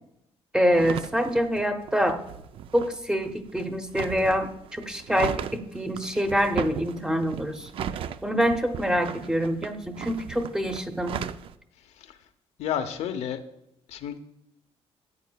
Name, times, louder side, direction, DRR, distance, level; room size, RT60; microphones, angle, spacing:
voice 1, 0.5-2.2 2.7-7.7 8.2-11.1, equal, 5° right, 7 dB, 0.8 m, -25 dB
sound 1, 0.7-11.6, right 9 dB, 55° right, 0.4 m, -37 dB
voice 2, 12.6-13.4 13.9-14.2, left 9 dB, 80° left, 7 dB, 0.8 m, -30 dB
13.5 x 9.1 x 2.3 m, 0.84 s
cardioid pair, 135°, 11 cm